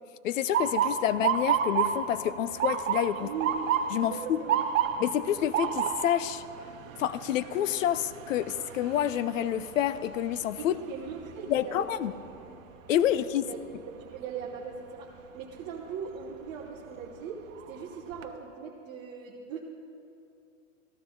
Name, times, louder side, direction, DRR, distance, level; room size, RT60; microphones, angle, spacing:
voice 1, 0.2-3.3 3.9-4.4 5.0-6.4 7.0-10.7 11.5-12.1 12.9-13.5, left 11 dB, 75° left, 16 dB, 0.6 m, -28 dB
Motor vehicle (road) / Siren, 0.5-12.4 12.9-13.3 14.1-14.4 16.3-16.5 17.0-17.1 17.6-18.2, right 8 dB, 75° right, 0.9 m, -31 dB
voice 2, 3.1-3.6 4.0-4.6 10.6-12.6 12.9-13.6 13.9-19.6, right 6 dB, 25° right, -3 dB, 0.9 m, -40 dB
14.0 x 12.5 x 3.8 m, 2.6 s
hypercardioid pair, 150°, 40 cm